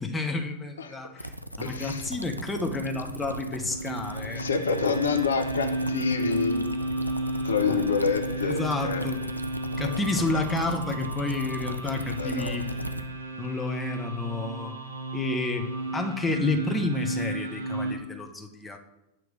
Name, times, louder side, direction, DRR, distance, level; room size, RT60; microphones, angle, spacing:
voice 1, 0.0-4.5 8.4-9.2 9.8-12.7 13.4-14.8 15.1-18.8, left 3 dB, 10° left, 3 dB, 0.8 m, -30 dB
sound 1, 1.2-13.0, equal, 90° right, 0.3 m, -37 dB
voice 2, 1.6-2.1 4.4-6.6 7.4-9.0 9.8-10.0 12.2-12.7, left 5 dB, 70° left, 7 dB, 0.6 m, -28 dB
sound 2, 3.6-17.9, right 1 dB, 70° right, 1.7 m, -33 dB
8.6 x 3.1 x 5.0 m, 0.92 s
figure-of-eight pair, 90°, 0 cm